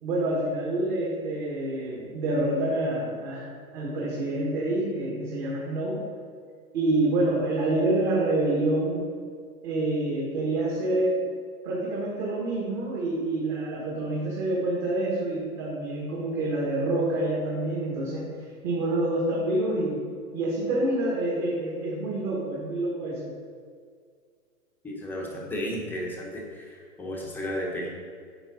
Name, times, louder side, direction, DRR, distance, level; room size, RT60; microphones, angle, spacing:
voice 1, 0.0-6.0 6.7-9.0 9.6-11.3 11.6-20.0 20.3-23.3, right 2 dB, 35° right, -4 dB, 1.7 m, -27 dB
voice 2, 24.8-27.9, equal, 5° left, -3 dB, 0.9 m, -33 dB
8.9 x 5.4 x 5.1 m, 2.1 s
hypercardioid pair, 150°, 46 cm